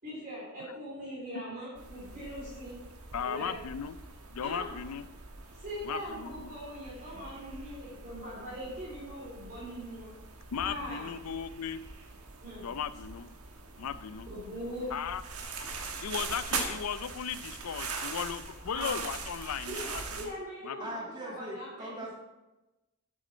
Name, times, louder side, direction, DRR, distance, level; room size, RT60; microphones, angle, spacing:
voice 1, 0.0-2.8 3.2-3.6 4.4-4.7 5.5-10.1 10.6-11.1 12.4-12.7 14.2-14.9 18.7-19.0 19.7-22.0, equal, 40° right, -7 dB, 3.2 m, -41 dB
sound 1, 1.7-20.3, right 4 dB, 85° right, 1.3 m, -42 dB
voice 2, 3.1-3.9 4.3-5.0 5.8-6.6 10.5-11.8 12.6-13.3 13.8-14.3 14.9-15.2 16.0-20.3 20.6-20.8, left 7 dB, 85° left, 14 dB, 0.5 m, -36 dB
voice 3, 20.8-22.1, right 1 dB, 20° right, -2 dB, 1.6 m, -40 dB
8.7 x 7.4 x 4.3 m, 1.0 s
head